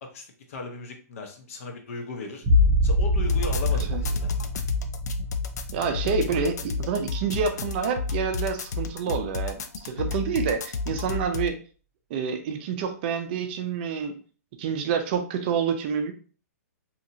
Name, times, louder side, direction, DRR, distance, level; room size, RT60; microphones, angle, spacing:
voice 1, 0.0-2.4 2.8-4.3, left 3 dB, 55° left, 3 dB, 0.8 m, -37 dB
sound 1, 2.4-7.9 8.3-9.0, left 1 dB, 15° right, 0.8 m, -26 dB
sound 2, 3.2-11.5, left 4 dB, 85° left, 0.4 m, -31 dB
voice 2, 5.7-11.6 12.1-14.2 14.6-16.1, right 6 dB, 40° right, 6 dB, 0.4 m, -28 dB
2.8 x 2.6 x 2.7 m, 0.38 s
hypercardioid pair, 150°, 9 cm